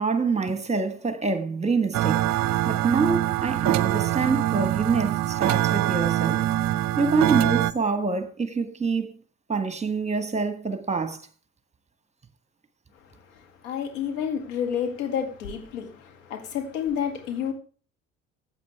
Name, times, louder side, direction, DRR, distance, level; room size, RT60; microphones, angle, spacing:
voice 1, 0.0-2.4 2.6-6.4 7.0-9.1 9.5-11.2, right 4 dB, 15° right, 1.6 m, -26 dB
sound 1, 1.9-7.7, right 13 dB, 40° right, 0.7 m, -24 dB
voice 2, 13.3-17.5, left 8 dB, 70° left, 2.3 m, -30 dB
15.5 x 8.2 x 3.4 m
figure-of-eight pair, 60°, 41 cm